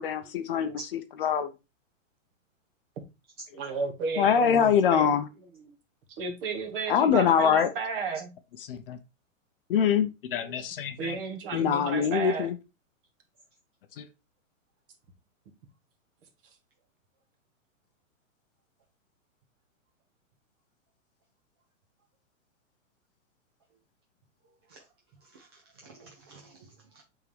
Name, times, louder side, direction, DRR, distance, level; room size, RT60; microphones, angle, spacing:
voice 1, 0.0-1.5 4.2-5.3 6.9-7.7 8.6-9.0 9.7-11.2 11.5-12.6 14.0-14.1, left 8 dB, 45° left, 0.7 m, -24 dB
voice 2, 3.5-5.1 5.7-5.8 6.2-8.3 10.4-10.6 11.0-12.5, right 4 dB, 40° right, 1.6 m, -33 dB
voice 3, 25.2-27.0, right 3 dB, 20° right, 0.4 m, -54 dB
8.0 x 3.7 x 3.2 m
hypercardioid pair, 160°, 40 cm